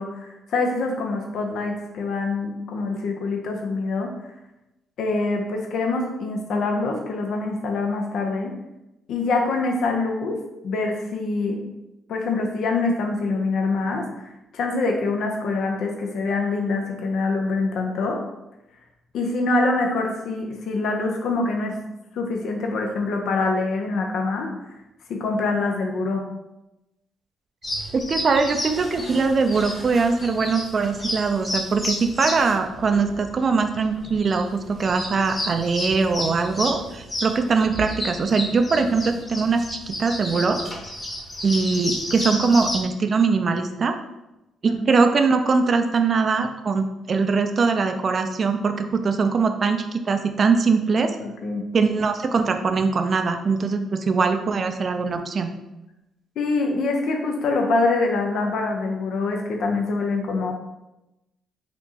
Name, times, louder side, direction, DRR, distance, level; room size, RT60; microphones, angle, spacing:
voice 1, 0.0-4.3 5.0-8.5 9.1-10.4 10.6-11.6 12.1-18.2 19.1-21.8 22.1-24.5 25.1-26.2 44.7-44.8 51.2-51.6 56.4-60.5, left 3 dB, 70° left, 2 dB, 0.5 m, -25 dB
sound 1, 27.6-42.8, left 1 dB, 25° left, 1.1 m, -32 dB
voice 2, 27.9-40.6 41.4-44.0 44.6-51.2 51.7-55.5, right 4 dB, 45° right, 7 dB, 0.4 m, -22 dB
4.3 x 3.0 x 2.7 m, 0.94 s
cardioid pair, 90°, 0 cm